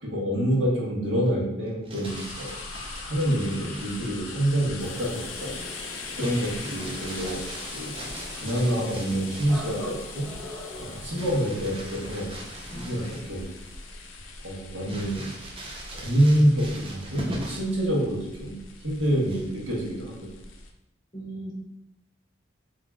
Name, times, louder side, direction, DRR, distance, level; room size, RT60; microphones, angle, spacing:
voice 1, 0.0-2.5 3.0-5.5 6.2-7.4 7.7-8.0 8.3-10.3 10.8-12.3 12.7-13.0 13.3-13.5 14.4-15.3 15.9-18.5 18.8-20.3, equal, 75° right, -4 dB, 1.2 m, -26 dB
Crumpling crinkling, 1.7-4.2 6.2-9.7 11.2-13.5 13.9-14.0 14.9-17.8 19.2-19.7, right 1 dB, 30° right, 0.6 m, -40 dB
sound 1, 2.0-20.7, left 3 dB, 85° left, 0.5 m, -41 dB
sound 2, 4.8-14.5, equal, ahead, 0.9 m, -44 dB
voice 2, 12.7-13.2 21.1-21.5, right 1 dB, 25° left, -4 dB, 0.9 m, -39 dB
3.7 x 2.6 x 3.5 m, 0.84 s
head